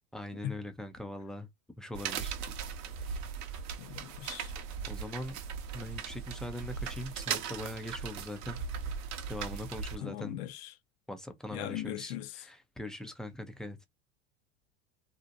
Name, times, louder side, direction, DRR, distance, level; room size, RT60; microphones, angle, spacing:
voice 1, 0.1-1.5 1.8-2.4 4.9-5.4 5.7-8.6 9.3-10.4 11.1-13.8, left 1 dB, ahead, 0.3 m, -41 dB
sound 1, 1.9-10.0, right 7 dB, 50° right, 0.7 m, -38 dB
voice 2, 3.8-4.5 10.0-10.7 11.5-12.3, left 12 dB, 65° left, 0.5 m, -39 dB
2.6 x 2.0 x 2.6 m
hypercardioid pair, 95°, 35 cm